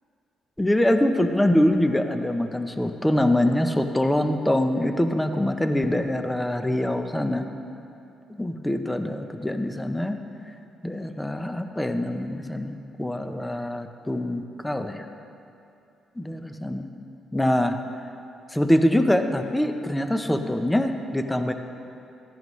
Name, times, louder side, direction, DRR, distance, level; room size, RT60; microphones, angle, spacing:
voice 1, 0.6-7.5 8.3-10.2 10.8-15.1 16.2-16.9 17.3-17.8 18.5-21.5, left 1 dB, 10° left, 7 dB, 0.7 m, -24 dB
14.5 x 10.5 x 3.2 m, 2.7 s
cardioid pair, 90°, 0 cm